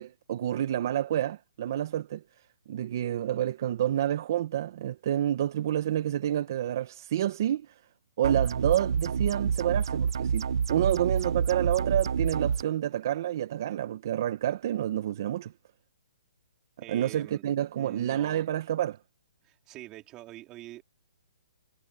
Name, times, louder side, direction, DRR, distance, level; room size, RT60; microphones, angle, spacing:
voice 1, 0.0-2.2 2.7-7.8 8.2-15.5 16.9-19.0, right 11 dB, 45° right, 1.3 m, -29 dB
sound 1, 8.2-12.6, right 6 dB, 65° right, 1.0 m, -28 dB
voice 2, 16.8-17.5 17.7-18.4 19.4-20.8, right 16 dB, 20° right, 4.3 m, -45 dB
hypercardioid pair, 160°, 3 cm